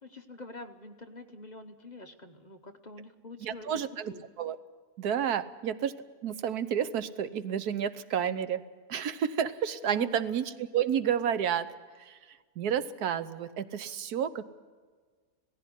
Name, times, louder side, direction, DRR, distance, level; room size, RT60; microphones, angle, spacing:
voice 1, 0.0-3.7 4.1-4.2 9.9-10.2, left 2 dB, 35° left, 6 dB, 0.9 m, -45 dB
voice 2, 3.4-4.6 5.0-5.9 6.2-8.6 8.9-11.7 12.0-12.2 12.6-14.5, right 9 dB, 90° right, 13 dB, 1.4 m, -30 dB
17.5 x 15.5 x 9.9 m, 1.5 s
omnidirectional pair, 1.6 m